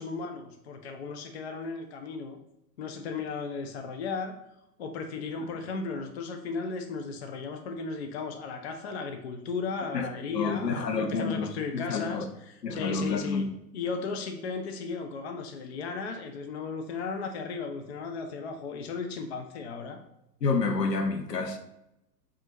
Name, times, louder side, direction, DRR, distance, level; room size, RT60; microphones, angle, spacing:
voice 1, 0.0-2.4 2.8-4.3 4.8-13.5 13.7-20.0, left 4 dB, 45° left, 0.5 m, -35 dB
voice 2, 10.3-12.3 12.6-13.5 20.4-21.6, left 4 dB, 75° left, 0.7 m, -29 dB
5.4 x 2.5 x 2.8 m
figure-of-eight pair, 105°, 49 cm